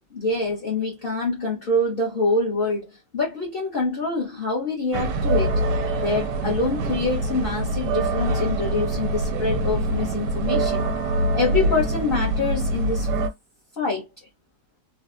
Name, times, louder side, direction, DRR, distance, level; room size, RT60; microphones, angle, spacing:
voice 1, 0.1-5.6 6.0-10.8 11.3-13.1 13.8-14.1, left 3 dB, 35° left, 1.2 m, -25 dB
sound 1, 4.9-13.3, right 2 dB, 85° right, 1.3 m, -24 dB
3.3 x 2.4 x 2.5 m
omnidirectional pair, 1.8 m